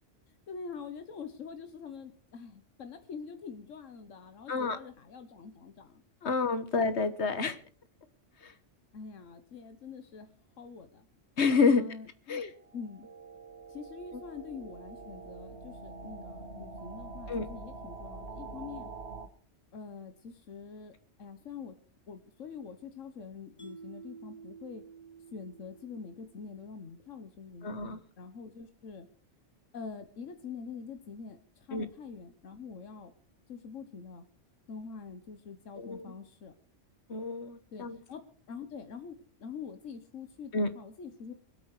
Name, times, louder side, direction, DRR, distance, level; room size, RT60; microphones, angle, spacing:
voice 1, 0.3-6.0 8.9-10.3 10.6-11.1 11.7-12.4 12.7-13.1 13.7-18.9 19.7-21.8 22.1-24.8 25.3-29.1 29.7-33.1 33.5-34.3 34.7-36.5 37.7-38.2 38.5-41.3, left 5 dB, 90° left, 8 dB, 1.5 m, -45 dB
voice 2, 4.5-4.8 6.2-7.6 8.4-8.5 11.4-11.8 12.3-12.5 17.3-17.5 27.6-28.0 31.7-31.9 35.8-36.1 37.1-38.0 40.5-40.7, left 4 dB, 65° left, 11 dB, 1.6 m, -28 dB
sound 1, 12.6-19.3, right 3 dB, 55° right, 1.6 m, -45 dB
Mallet percussion, 23.6-26.9, right 5 dB, 30° left, 1.8 m, -51 dB
23.5 x 8.5 x 4.8 m, 0.42 s
omnidirectional pair, 1.3 m